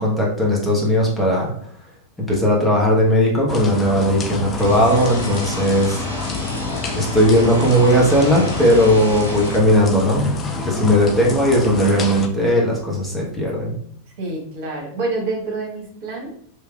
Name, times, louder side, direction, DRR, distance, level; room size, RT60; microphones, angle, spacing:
voice 1, 0.0-1.5 2.2-6.1 6.9-10.3 10.7-13.8, equal, 5° left, -4 dB, 1.1 m, -17 dB
sound 1, 3.5-12.3, left 4 dB, 25° left, 0.5 m, -29 dB
sound 2, 4.6-9.6, equal, 85° right, 0.6 m, -31 dB
voice 2, 14.2-16.3, right 2 dB, 50° right, -1 dB, 1.2 m, -27 dB
3.2 x 3.1 x 2.3 m, 0.63 s
figure-of-eight pair, 90°, 0 cm